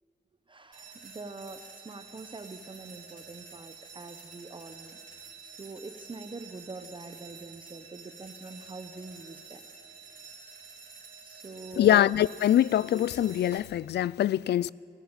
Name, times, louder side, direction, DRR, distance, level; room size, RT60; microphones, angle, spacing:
voice 1, 0.5-9.6 11.2-12.0, right 3 dB, 30° right, 1.0 m, -44 dB
sound 1, 0.7-13.6, right 5 dB, 50° right, 5.7 m, -49 dB
voice 2, 11.8-14.7, left 11 dB, 75° left, 0.4 m, -23 dB
20.0 x 14.5 x 8.9 m
wide cardioid pair, 105°, 18 cm